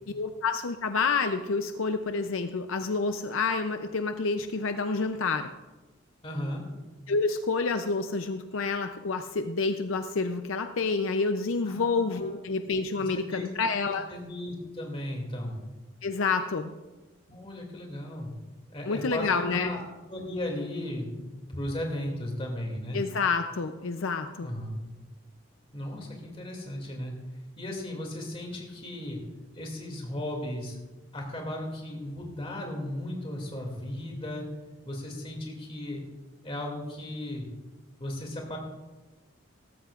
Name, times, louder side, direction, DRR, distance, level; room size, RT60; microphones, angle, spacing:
voice 1, 0.1-5.5 7.1-14.1 16.0-16.7 18.9-19.7 22.9-24.5, left 4 dB, 70° left, 7 dB, 0.6 m, -28 dB
voice 2, 6.2-6.6 11.7-12.4 12.9-13.5 14.1-15.5 17.3-18.3 18.7-19.8 20.1-23.0 24.4-24.8 25.7-27.1 27.6-29.2 29.6-30.8 31.1-34.4 34.8-36.0 36.4-37.5 38.0-38.6, left 1 dB, 25° left, 0 dB, 2.5 m, -36 dB
17.5 x 14.0 x 2.5 m, 1.2 s
head